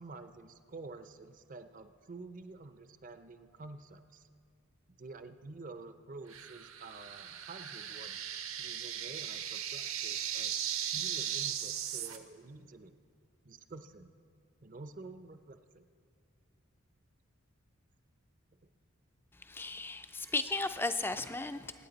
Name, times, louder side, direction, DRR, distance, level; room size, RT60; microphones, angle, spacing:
voice 1, 0.0-4.2 4.9-8.2 8.6-10.5 10.9-13.0 13.4-14.1 14.6-15.8, right 3 dB, 35° right, 10 dB, 0.5 m, -49 dB
sound 1, 6.3-12.2, right 9 dB, 70° right, 0.9 m, -37 dB
voice 2, 19.4-21.9, left 3 dB, 10° left, 11 dB, 0.3 m, -35 dB
25.0 x 9.3 x 4.0 m, 2.2 s
head